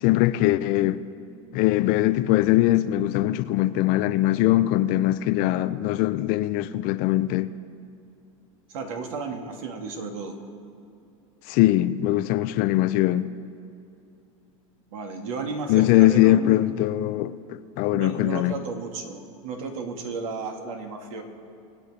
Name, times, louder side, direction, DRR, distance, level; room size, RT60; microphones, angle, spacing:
voice 1, 0.0-1.0 1.5-7.5 11.5-13.3 15.7-17.4 17.8-18.6, left 15 dB, 55° left, 0.6 m, -21 dB
voice 2, 8.7-10.4 14.9-16.5 17.9-21.2, right 4 dB, 75° right, 2.0 m, -33 dB
24.0 x 8.2 x 4.2 m
hypercardioid pair, 105°, 18 cm